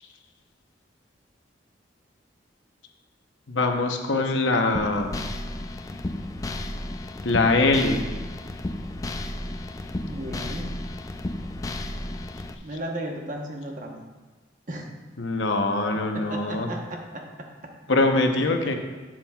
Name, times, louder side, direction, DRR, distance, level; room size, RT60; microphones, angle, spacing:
voice 1, 3.5-5.1 7.2-8.0 15.2-16.7 17.9-18.7, left 2 dB, 85° left, 4 dB, 0.9 m, -23 dB
sound 1, 4.7-12.5, left 1 dB, 20° left, 0.3 m, -33 dB
voice 2, 9.9-10.8 12.6-14.0 14.7-14.8 16.1-17.7 18.6-18.7, right 1 dB, 45° right, 1 dB, 1.0 m, -35 dB
11.5 x 7.4 x 2.4 m, 1.3 s
head